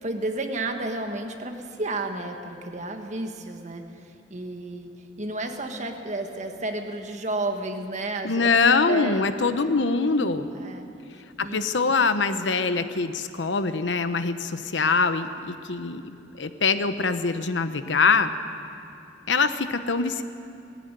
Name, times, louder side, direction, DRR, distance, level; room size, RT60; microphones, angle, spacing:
voice 1, 0.0-4.9 5.2-8.5 8.9-9.3 9.7-10.8 11.4-11.7, right 2 dB, 40° right, 4 dB, 1.6 m, -32 dB
voice 2, 8.2-10.5 11.4-18.3 19.3-20.2, left 4 dB, 85° left, 10 dB, 1.0 m, -23 dB
18.5 x 15.5 x 9.2 m, 2.6 s
head